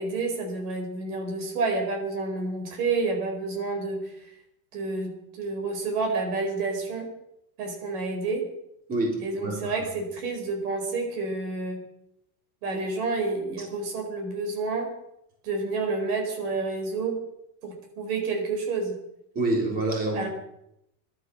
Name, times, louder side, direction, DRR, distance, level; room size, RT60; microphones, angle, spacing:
voice 1, 0.0-4.1 4.7-7.1 7.6-8.5 9.2-11.8 12.6-14.9 15.4-17.2 17.6-18.9 20.1-20.3, right 3 dB, 65° right, 3 dB, 4.7 m, -29 dB
voice 2, 8.9-9.8 19.4-20.3, right 2 dB, 20° right, 0 dB, 3.7 m, -27 dB
18.5 x 12.0 x 6.2 m, 0.79 s
supercardioid pair, 180°, 47 cm